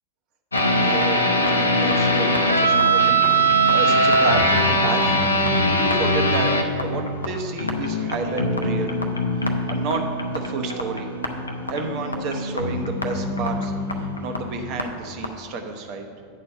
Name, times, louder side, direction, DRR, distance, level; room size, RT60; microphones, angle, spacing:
sound 1, 0.5-14.8 15.2-15.3, right 1 dB, 80° left, 0.6 m, -22 dB
voice 1, 0.7-1.3 1.6-5.3 5.7-9.0 9.4-11.1 11.7-16.1, right 4 dB, 40° right, 5 dB, 0.9 m, -31 dB
sound 2, 3.0-15.5, left 1 dB, ahead, 0.8 m, -37 dB
8.6 x 4.3 x 6.5 m, 2.2 s
figure-of-eight pair, 85°, 0 cm